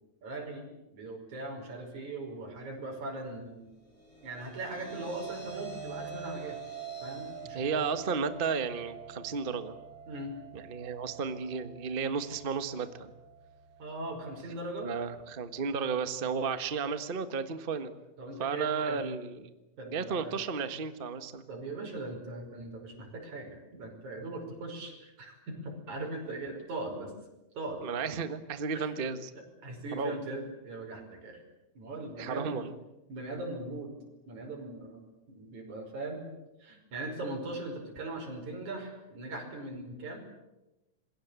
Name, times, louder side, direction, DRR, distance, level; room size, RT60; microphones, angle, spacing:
voice 1, 0.2-3.7 4.2-6.6 7.0-7.9 10.1-10.3 13.8-14.9 18.2-19.0 19.8-20.3 21.5-27.1 27.6-28.2 28.7-28.9 29.6-31.4 31.8-32.6 33.1-33.9 34.3-36.3 36.6-40.2, right 2 dB, 75° right, 1 dB, 6.9 m, -40 dB
sound 1, 3.8-16.1, right 6 dB, 45° left, 7.3 m, -46 dB
voice 2, 7.5-9.7 10.5-13.1 14.8-17.9 18.4-19.5 19.9-21.4 27.8-29.3 29.9-30.2 32.2-32.7, right 5 dB, 35° right, 10 dB, 0.8 m, -33 dB
27.0 x 22.0 x 8.3 m, 0.98 s
omnidirectional pair, 3.4 m